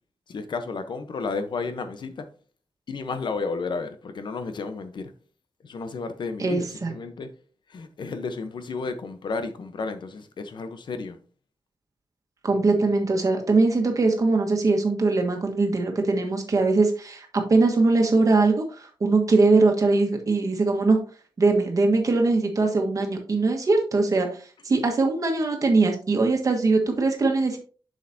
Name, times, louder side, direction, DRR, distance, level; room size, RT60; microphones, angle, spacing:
voice 1, 0.3-2.3 2.9-5.1 5.6-7.3 7.7-11.2, left 4 dB, 65° left, 0.9 m, -32 dB
voice 2, 6.4-6.9 12.4-21.0 21.4-24.3 24.6-27.6, right 3 dB, 40° right, 1.4 m, -21 dB
8.0 x 6.4 x 2.7 m
wide cardioid pair, 175°, 9 cm